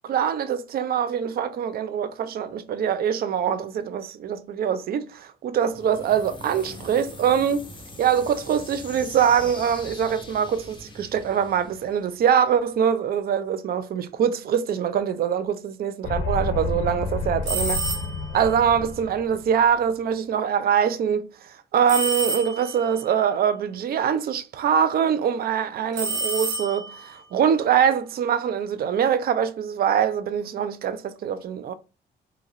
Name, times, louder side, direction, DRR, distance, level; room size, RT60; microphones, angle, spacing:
voice 1, 0.0-7.7 8.0-17.9 18.3-31.7, right 8 dB, 50° right, 0.4 m, -23 dB
sound 1, 5.6-12.5, left 1 dB, 25° left, 0.9 m, -42 dB
sound 2, 16.0-19.6, left 3 dB, 70° left, 0.5 m, -30 dB
sound 3, 17.4-18.4 21.9-22.9 25.9-27.1, right 2 dB, 70° right, 0.9 m, -28 dB
2.8 x 2.4 x 2.7 m
cardioid pair, 90°, 20 cm